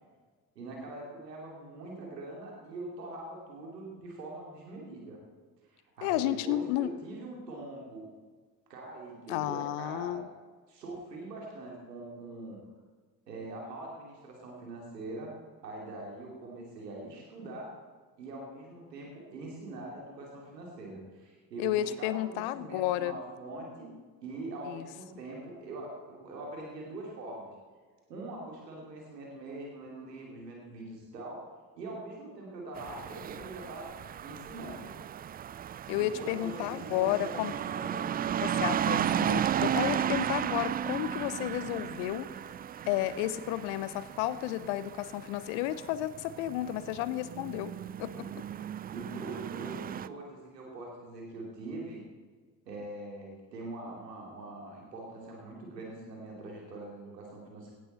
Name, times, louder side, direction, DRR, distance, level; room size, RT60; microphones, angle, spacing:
voice 1, 0.5-5.2 5.6-8.1 8.7-10.3 10.7-12.6 13.3-15.4 15.6-17.8 18.2-23.9 24.2-27.5 28.1-31.4 31.7-34.9 36.0-38.2 48.2-52.0 52.7-57.7, right 2 dB, 85° right, -1 dB, 2.8 m, -43 dB
voice 2, 6.0-6.9 9.3-10.3 21.6-23.1 24.7-24.9 35.9-37.5 38.4-42.3 42.9-47.7 48.0-48.3, left 13 dB, 65° left, 15 dB, 0.9 m, -32 dB
sound 1, 32.8-50.1, right 9 dB, 20° right, 0.3 m, -34 dB
17.0 x 12.0 x 4.2 m, 1.4 s
figure-of-eight pair, 50°, 48 cm